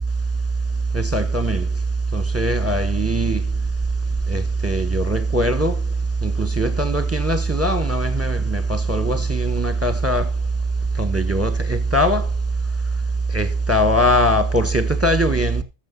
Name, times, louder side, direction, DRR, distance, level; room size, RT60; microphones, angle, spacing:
voice 1, 0.9-1.7 2.1-3.4 4.3-5.8 6.2-10.3 11.0-12.3 13.3-15.6, right 1 dB, 10° right, 1.3 m, -20 dB
14.0 x 6.8 x 5.3 m
omnidirectional pair, 1.3 m